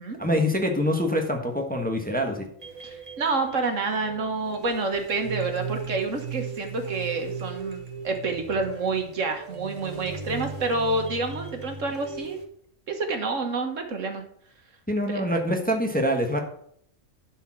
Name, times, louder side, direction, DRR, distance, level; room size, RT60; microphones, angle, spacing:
voice 1, 0.2-2.5 14.9-16.4, equal, 5° left, 3 dB, 1.2 m, -25 dB
sound 1, 2.6-12.5, right 5 dB, 30° right, 1.4 m, -37 dB
voice 2, 2.8-12.4 12.9-14.2 15.1-15.3, right 3 dB, 70° right, 5 dB, 1.8 m, -28 dB
11.5 x 4.6 x 6.0 m, 0.65 s
omnidirectional pair, 1.3 m